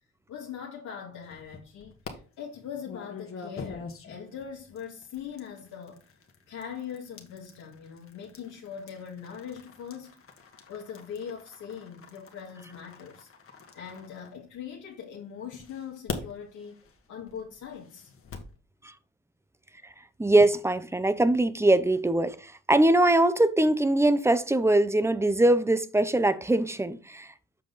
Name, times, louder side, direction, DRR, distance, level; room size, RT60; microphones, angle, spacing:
voice 1, 0.3-1.9 2.4-6.0 6.5-10.2 10.7-13.3 13.7-16.8 17.1-18.1, left 7 dB, 80° left, 2.0 m, -41 dB
sound 1, 1.2-2.1 2.8-14.9 15.5-18.6, left 5 dB, 45° left, 1.6 m, -45 dB
voice 2, 20.2-27.3, right 1 dB, 10° right, 0.7 m, -22 dB
7.7 x 5.1 x 3.9 m
cardioid pair, 90°, 30 cm